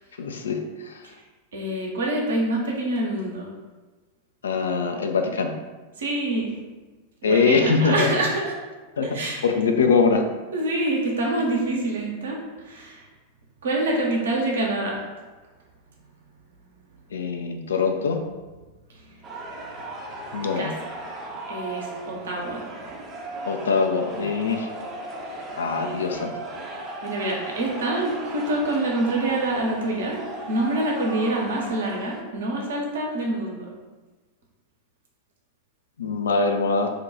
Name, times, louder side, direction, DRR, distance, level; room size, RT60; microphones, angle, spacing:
voice 1, 0.2-1.0 4.4-5.5 7.2-8.3 9.0-10.2 17.1-18.2 20.3-20.7 23.5-24.7 25.6-26.3 36.0-36.9, left 4 dB, 65° left, 4 dB, 0.3 m, -23 dB
voice 2, 1.5-3.5 6.0-6.5 7.2-8.5 9.0-9.4 10.5-13.1 13.6-15.0 20.6-20.7 21.5-22.6 25.8-26.0 27.0-33.7, right 2 dB, 65° right, -2 dB, 0.7 m, -26 dB
sound 1, 19.2-32.2, right 1 dB, 30° right, 0.6 m, -36 dB
2.5 x 2.2 x 4.0 m, 1.2 s
figure-of-eight pair, 90°, 0 cm